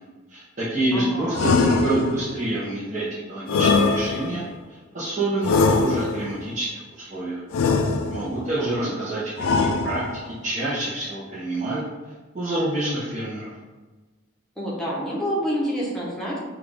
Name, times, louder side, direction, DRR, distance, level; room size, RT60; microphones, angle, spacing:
voice 1, 0.3-4.4 4.7-7.4 8.1-9.2 9.5-11.8 12.3-13.5, right 1 dB, 35° right, -10 dB, 0.9 m, -27 dB
voice 2, 0.9-2.2 8.5-8.9 14.6-16.4, equal, ahead, -6 dB, 1.0 m, -29 dB
sound 1, 1.3-2.4 3.5-4.5 5.4-6.4 7.5-8.4 9.4-10.3, left 4 dB, 80° left, 0.4 m, -22 dB
5.9 x 2.4 x 3.4 m, 1.3 s
head